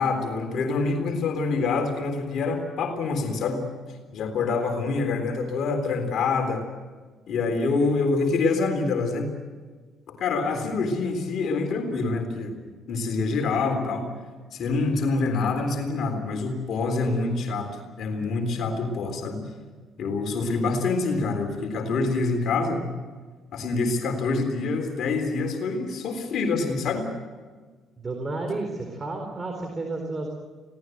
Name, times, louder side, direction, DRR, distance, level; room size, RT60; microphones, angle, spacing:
voice 1, 0.0-3.6 4.1-6.7 7.3-9.3 10.2-12.5 12.9-14.1 14.5-19.4 20.0-22.9 23.5-27.1, left 3 dB, 65° left, 4 dB, 3.7 m, -26 dB
voice 2, 16.8-17.4 28.0-30.3, right 2 dB, 30° right, 3 dB, 4.1 m, -32 dB
25.0 x 18.0 x 7.9 m, 1.4 s
cardioid pair, 85°, 0 cm